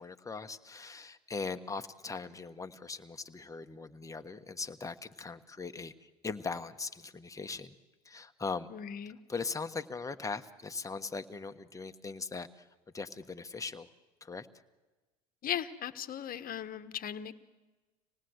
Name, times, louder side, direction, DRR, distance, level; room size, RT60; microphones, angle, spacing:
voice 1, 0.0-7.7 8.0-8.7 9.3-12.7 12.9-13.9 14.2-14.5, left 4 dB, 15° left, 8 dB, 1.3 m, -40 dB
voice 2, 8.7-9.2 15.4-17.3, left 10 dB, 45° left, 12 dB, 1.3 m, -37 dB
26.0 x 19.0 x 8.0 m, 1.2 s
hypercardioid pair, 80°, 20 cm